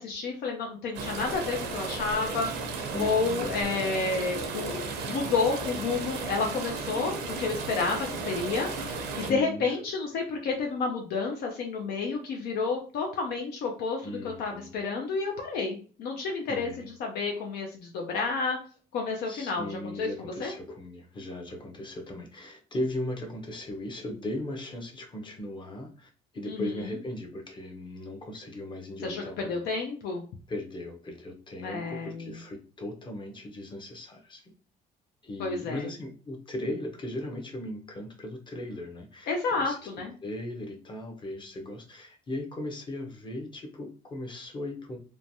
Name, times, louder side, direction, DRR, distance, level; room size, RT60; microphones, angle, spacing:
voice 1, 0.0-2.5 3.0-18.6 18.9-20.1 20.4-20.5 26.4-26.7 29.0-30.2 31.6-32.4 35.4-35.9 39.3-40.1, left 4 dB, 75° left, 1 dB, 0.5 m, -30 dB
sound 1, 0.9-9.3, right 4 dB, 90° right, 0.7 m, -34 dB
voice 2, 2.9-3.5 9.2-9.8 14.0-14.7 16.5-16.9 19.3-29.7 30.5-34.5 35.2-39.8 40.2-45.0, left 1 dB, 30° left, 2 dB, 0.7 m, -37 dB
3.1 x 2.2 x 2.6 m, 0.40 s
cardioid pair, 110°, 17 cm